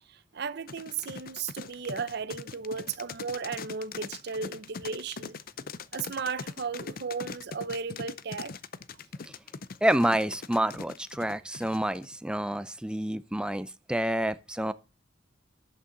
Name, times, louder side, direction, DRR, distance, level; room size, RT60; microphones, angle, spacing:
voice 1, 0.0-5.4 5.9-8.5, right 5 dB, 60° right, 0.7 m, -35 dB
sound 1, 0.7-12.1, left 5 dB, 50° left, 0.6 m, -41 dB
voice 2, 9.8-14.7, right 1 dB, 5° right, 0.5 m, -28 dB
11.0 x 8.6 x 3.9 m
head